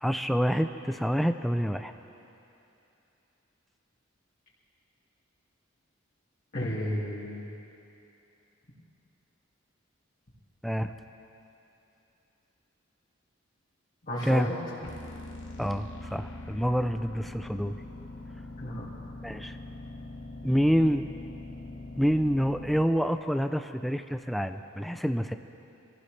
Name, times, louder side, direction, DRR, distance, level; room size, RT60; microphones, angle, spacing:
voice 1, 0.0-1.9 10.6-10.9 14.2-14.5 15.6-17.8 19.2-19.6 20.4-21.1 22.0-25.3, equal, ahead, 8 dB, 0.5 m, -27 dB
voice 2, 6.5-7.5 14.0-14.8 18.6-18.9, left 1 dB, 45° left, -10 dB, 2.3 m, -33 dB
sound 1, 14.8-22.8, left 2 dB, 70° left, 1.8 m, -42 dB
27.0 x 15.5 x 3.3 m, 2.8 s
head